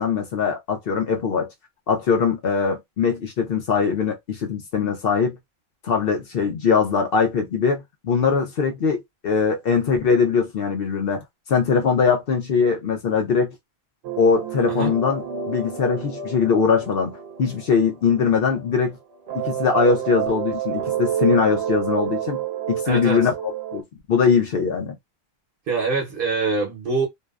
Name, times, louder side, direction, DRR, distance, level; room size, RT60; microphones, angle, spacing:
voice 1, 0.0-1.5 1.9-5.4 5.8-11.2 11.5-13.5 14.2-19.0 19.3-22.4 22.7-23.3 23.7-23.8 24.1-24.9, left 5 dB, 70° left, 0.8 m, -21 dB
sound 1, 14.0-18.9 19.3-23.8, right 9 dB, 85° right, 0.9 m, -29 dB
voice 2, 22.8-23.2 25.7-27.1, right 4 dB, 60° right, 0.9 m, -24 dB
2.6 x 2.1 x 2.3 m
omnidirectional pair, 1.0 m